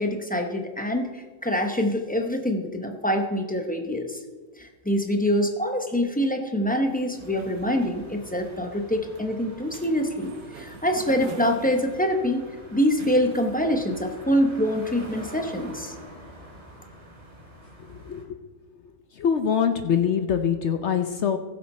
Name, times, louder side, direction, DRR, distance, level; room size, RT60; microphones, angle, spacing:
voice 1, 0.0-4.2 4.6-12.4 12.7-15.9, equal, 10° left, 4 dB, 0.4 m, -25 dB
sound 1, 6.8-14.1, right 5 dB, 85° right, 1.8 m, -45 dB
sound 2, 7.2-18.2, equal, 20° right, 2.2 m, -46 dB
voice 2, 18.1-18.4 19.2-21.4, left 7 dB, 60° left, 7 dB, 0.7 m, -24 dB
15.5 x 7.3 x 4.3 m, 1.4 s
omnidirectional pair, 1.7 m